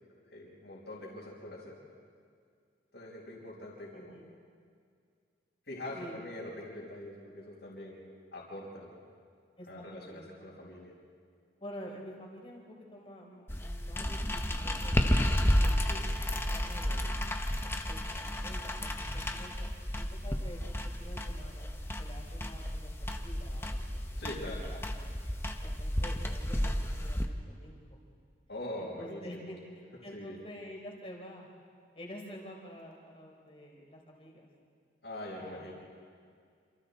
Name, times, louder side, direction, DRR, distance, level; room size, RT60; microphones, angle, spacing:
voice 1, 0.3-1.8 2.9-4.2 5.7-8.0 8.3-9.0 9.7-10.9 15.9-16.1 24.2-24.6 28.5-29.5 30.1-30.4 35.0-35.7, left 1 dB, 65° left, -8 dB, 4.9 m, -43 dB
voice 2, 3.9-4.3 5.9-6.2 9.6-10.5 11.6-15.9 16.3-17.1 17.9-19.7 19.9-21.7 22.0-24.0 24.5-24.8 25.6-28.0 28.8-31.5 31.9-34.5 35.3-35.7, equal, 30° left, -1 dB, 4.1 m, -49 dB
sound 1, 13.5-27.2, equal, 15° left, 1.0 m, -32 dB
28.0 x 27.5 x 4.2 m, 2.2 s
head